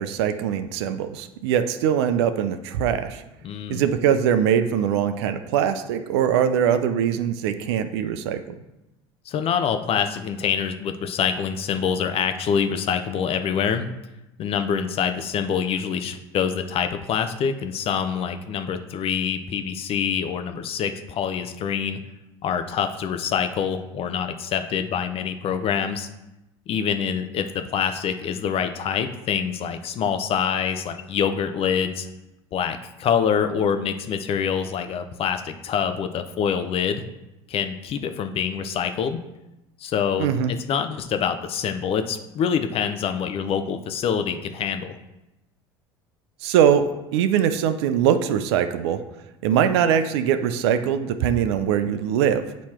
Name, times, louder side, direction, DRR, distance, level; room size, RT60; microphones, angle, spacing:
voice 1, 0.0-3.2 3.7-8.4 40.2-40.5 46.4-49.0 49.4-52.4, right 8 dB, 80° right, 10 dB, 0.5 m, -22 dB
voice 2, 3.4-3.8 9.3-13.9 14.4-22.0 22.4-26.1 26.7-32.1 32.5-37.0 37.5-39.2 39.8-45.0, left 7 dB, 45° left, 8 dB, 0.6 m, -25 dB
8.6 x 3.1 x 4.3 m, 0.95 s
hypercardioid pair, 85°, 13 cm